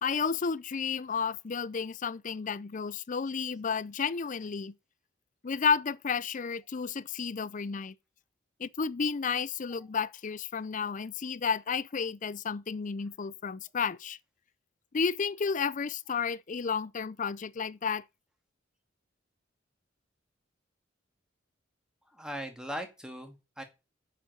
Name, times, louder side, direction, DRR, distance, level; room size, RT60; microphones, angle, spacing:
voice 1, 0.0-4.7 5.4-7.9 8.6-14.2 14.9-18.0, left 5 dB, 40° left, 0.5 m, -32 dB
voice 2, 22.1-23.6, equal, 5° right, 2.0 m, -39 dB
8.0 x 7.5 x 7.7 m
head